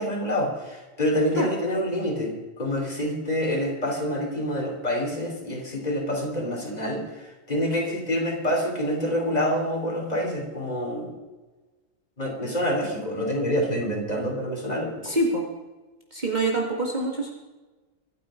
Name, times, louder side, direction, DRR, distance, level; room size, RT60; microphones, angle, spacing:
voice 1, 0.0-11.2 12.2-15.2, equal, 30° left, 0 dB, 3.6 m, -27 dB
voice 2, 15.0-15.4 16.1-17.3, right 2 dB, 35° right, -1 dB, 2.1 m, -25 dB
24.5 x 8.7 x 5.1 m, 1.2 s
omnidirectional pair, 1.4 m